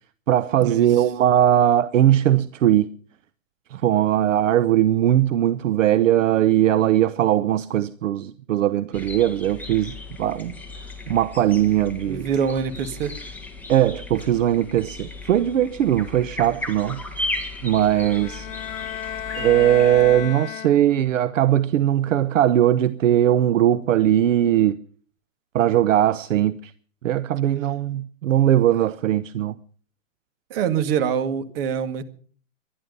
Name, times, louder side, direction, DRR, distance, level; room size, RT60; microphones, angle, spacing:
voice 1, 0.3-2.9 3.7-10.5 11.1-12.3 13.7-17.0 17.6-18.5 19.3-24.8 25.5-26.7 27.0-29.5, right 11 dB, 70° right, 0.9 m, -19 dB
sound 1, 8.9-20.3, left 2 dB, 5° left, 1.7 m, -36 dB
voice 2, 12.0-13.2 30.5-32.0, right 7 dB, 45° right, 2.1 m, -25 dB
sound 2, 17.9-21.1, left 10 dB, 85° left, 0.8 m, -33 dB
24.0 x 11.0 x 5.4 m
hypercardioid pair, 140°, 39 cm